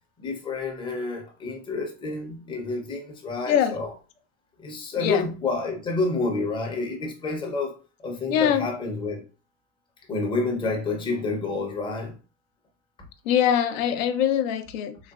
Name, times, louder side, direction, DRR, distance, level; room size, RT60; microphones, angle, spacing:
voice 1, 0.2-3.9 4.6-9.2 10.1-12.2, left 3 dB, 10° left, 0.5 m, -29 dB
voice 2, 3.5-3.8 5.0-5.2 8.3-8.7 13.2-15.0, left 9 dB, 70° left, 0.5 m, -23 dB
3.8 x 2.2 x 2.3 m
supercardioid pair, 145°, 41 cm